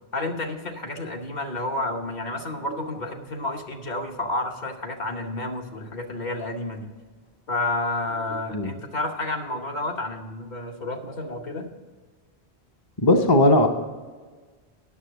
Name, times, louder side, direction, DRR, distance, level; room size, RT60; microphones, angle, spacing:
voice 1, 0.1-6.9 7.5-11.7, left 2 dB, 45° left, 3 dB, 1.1 m, -30 dB
voice 2, 13.0-13.7, left 1 dB, 25° left, 4 dB, 0.6 m, -17 dB
9.4 x 6.7 x 6.7 m, 1.4 s
omnidirectional pair, 1.1 m